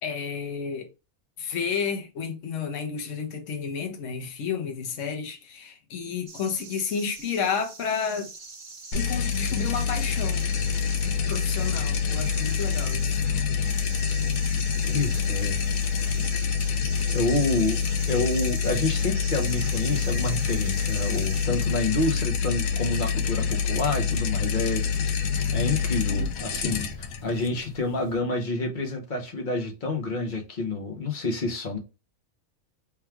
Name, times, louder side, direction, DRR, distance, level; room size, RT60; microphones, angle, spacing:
voice 1, 0.0-0.9 1.4-8.3 8.9-10.5 11.0-13.2, left 6 dB, 65° left, 1.1 m, -31 dB
sound 1, 6.3-21.5, right 3 dB, 45° right, 1.0 m, -43 dB
sound 2, 8.9-28.2, left 6 dB, 90° left, 1.1 m, -26 dB
voice 2, 14.9-15.6 17.1-25.1 25.5-31.8, left 2 dB, 40° left, 0.9 m, -28 dB
3.5 x 2.3 x 4.4 m
omnidirectional pair, 1.4 m